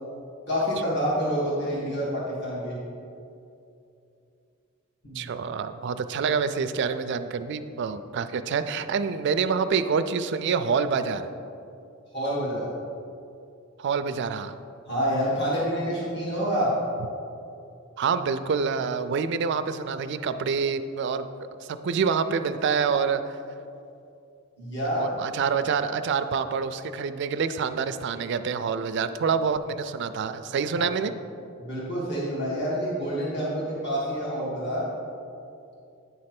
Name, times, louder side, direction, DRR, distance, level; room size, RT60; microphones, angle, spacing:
voice 1, 0.5-2.8 5.0-5.3 12.1-12.7 14.9-16.7 24.6-25.1 30.7-30.9 31.6-34.9, equal, 50° left, -7 dB, 1.5 m, -27 dB
voice 2, 5.1-11.3 13.8-14.5 18.0-21.3 21.6-23.2 25.0-31.1, right 5 dB, 50° right, 10 dB, 0.3 m, -27 dB
9.4 x 3.2 x 5.9 m, 2.6 s
head